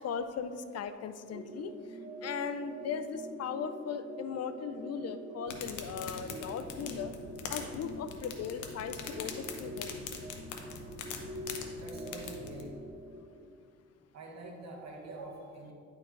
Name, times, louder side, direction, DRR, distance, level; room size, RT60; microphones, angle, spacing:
voice 1, 0.0-1.7 2.2-7.1 7.5-10.0, left 7 dB, 55° left, 10 dB, 0.5 m, -38 dB
sound 1, 1.3-13.2, right 1 dB, 25° right, 0.9 m, -45 dB
sound 2, 5.5-12.7, left 5 dB, 75° left, 0.9 m, -43 dB
voice 2, 11.7-12.7 14.1-15.7, right 2 dB, 60° right, -1 dB, 1.6 m, -46 dB
10.0 x 4.5 x 3.8 m, 2.3 s
cardioid pair, 90°, 30 cm